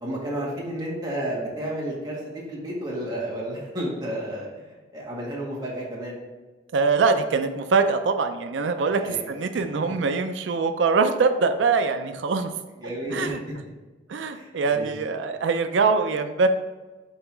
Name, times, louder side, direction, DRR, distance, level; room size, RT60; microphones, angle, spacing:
voice 1, 0.0-4.5 4.9-6.2 8.9-9.3 12.8-13.3 14.3-14.9, right 1 dB, 20° right, -5 dB, 1.7 m, -31 dB
voice 2, 6.7-12.5 13.1-13.4 14.1-16.5, right 4 dB, 85° right, 8 dB, 0.4 m, -23 dB
5.5 x 3.9 x 4.5 m, 1.3 s
head